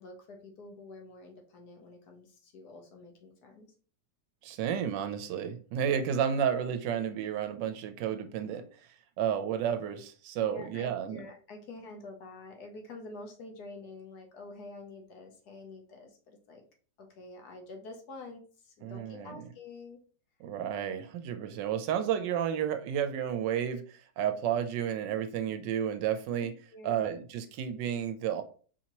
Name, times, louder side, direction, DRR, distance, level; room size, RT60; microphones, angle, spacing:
voice 1, 0.0-3.7 5.8-6.0 10.4-16.6 17.0-20.0 26.4-27.0, left 2 dB, 65° left, 1.3 m, -47 dB
voice 2, 4.4-8.7 9.2-11.2 18.8-19.4 20.4-23.8 24.2-26.5 26.8-28.4, right 9 dB, 80° right, 1.2 m, -31 dB
4.7 x 2.8 x 2.9 m
omnidirectional pair, 1.9 m